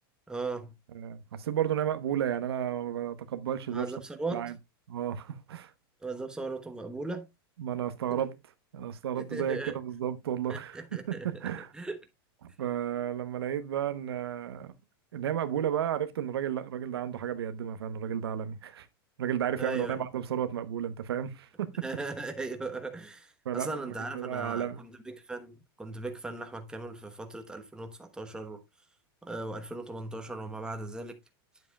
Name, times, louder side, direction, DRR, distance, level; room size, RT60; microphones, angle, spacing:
voice 1, 0.3-0.7 3.7-4.5 6.0-7.3 8.1-8.2 9.1-9.8 10.5-12.0 19.6-20.0 21.8-28.6 29.2-31.2, right 3 dB, 5° right, 1.1 m, -38 dB
voice 2, 0.9-3.9 4.3-4.5 4.9-5.7 7.6-8.3 8.7-11.7 12.4-14.7 15.1-18.9 19.2-21.7 23.4-24.8, right 10 dB, 90° right, 0.9 m, -32 dB
9.5 x 7.6 x 2.3 m
supercardioid pair, 130°, 13 cm